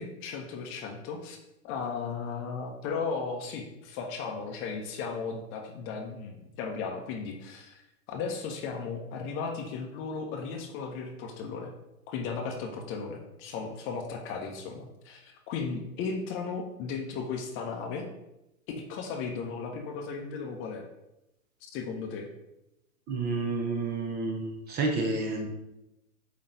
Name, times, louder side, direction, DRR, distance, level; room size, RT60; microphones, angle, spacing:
voice 1, 0.0-1.4 1.6-7.8 8.1-11.7 12.1-18.1 18.9-20.8 21.7-22.3, left 5 dB, 30° left, 3 dB, 0.8 m, -35 dB
voice 2, 23.1-25.5, right 3 dB, 20° right, 2 dB, 0.8 m, -30 dB
8.6 x 3.2 x 4.0 m, 0.91 s
hypercardioid pair, 120°, 43 cm